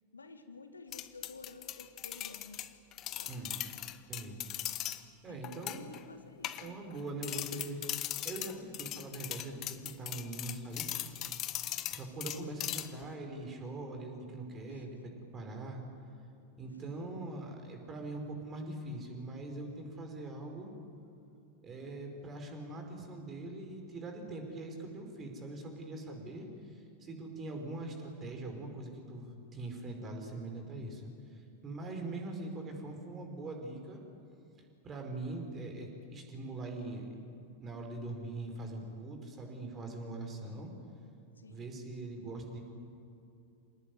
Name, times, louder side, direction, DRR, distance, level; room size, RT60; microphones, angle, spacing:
voice 1, 0.1-2.6 3.2-3.5 5.3-6.8 14.7-14.8 16.7-16.9 41.4-41.7, left 3 dB, 75° left, 9 dB, 1.6 m, -52 dB
sound 1, 0.9-5.0 5.4-6.0 6.4-7.0 7.2-13.1, left 13 dB, 35° left, 1.2 m, -39 dB
voice 2, 3.3-3.6 4.1-4.4 5.2-5.8 6.6-7.8 8.2-11.2 11.9-15.8 16.6-20.7 21.6-31.0 31.3-34.0 34.8-37.3 37.6-40.7 41.5-42.6, right 2 dB, 25° right, 3 dB, 5.1 m, -42 dB
27.0 x 18.5 x 9.7 m, 2.7 s
figure-of-eight pair, 90°, 0 cm